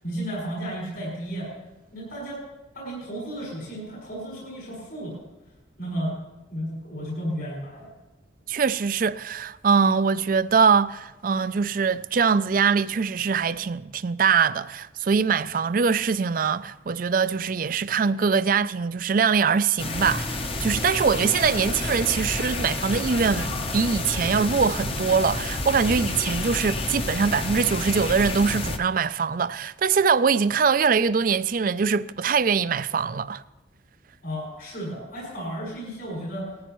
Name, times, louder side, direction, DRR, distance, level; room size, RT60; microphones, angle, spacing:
voice 1, 0.0-1.5 1.9-2.4 2.7-5.2 5.8-6.1 6.5-7.9 34.2-36.5, equal, 60° left, 5.4 m, -33 dB
voice 2, 8.5-33.4, right 5 dB, 45° right, 0.4 m, -23 dB
sound 1, 19.8-28.8, left 2 dB, 30° left, 0.8 m, -29 dB
19.0 x 14.5 x 3.1 m
head